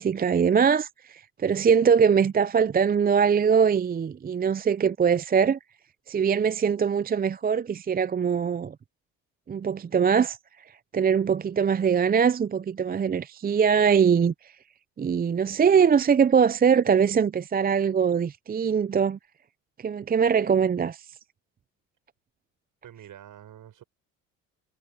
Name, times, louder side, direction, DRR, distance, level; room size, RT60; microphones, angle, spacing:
voice 1, 0.0-5.6 6.1-8.7 9.5-10.4 10.9-14.3 15.0-19.2 19.8-21.0, right 7 dB, 25° right, 0.6 m, -22 dB
voice 2, 22.8-23.8, right 10 dB, 55° right, 7.9 m, -46 dB
hypercardioid pair, 65°, 39 cm